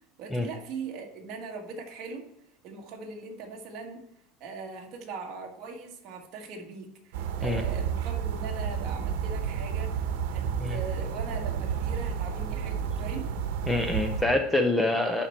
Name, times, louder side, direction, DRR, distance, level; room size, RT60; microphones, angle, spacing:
voice 1, 0.2-2.2 2.6-4.0 4.4-13.3, right 4 dB, 35° right, 1 dB, 1.6 m, -40 dB
sound 1, 7.1-14.2, right 7 dB, 70° right, 1.1 m, -31 dB
voice 2, 13.7-15.3, left 2 dB, 5° left, 5 dB, 0.5 m, -26 dB
11.5 x 4.3 x 4.4 m, 0.79 s
cardioid pair, 175°, 0 cm